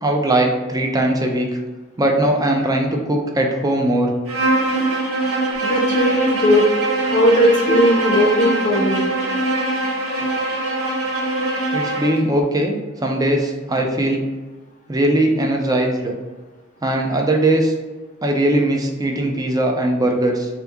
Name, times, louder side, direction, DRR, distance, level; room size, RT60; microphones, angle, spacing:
voice 1, 0.0-1.5 2.0-4.1 11.7-12.8 13.0-14.2 14.9-16.1 16.8-17.7 18.2-20.5, right 1 dB, 20° right, 2 dB, 0.5 m, -19 dB
Bowed string instrument, 4.3-12.2, right 2 dB, 85° right, 0.8 m, -22 dB
voice 2, 5.6-6.6 7.0-9.1, equal, 35° left, -1 dB, 0.6 m, -17 dB
3.5 x 2.9 x 3.5 m, 1.2 s
head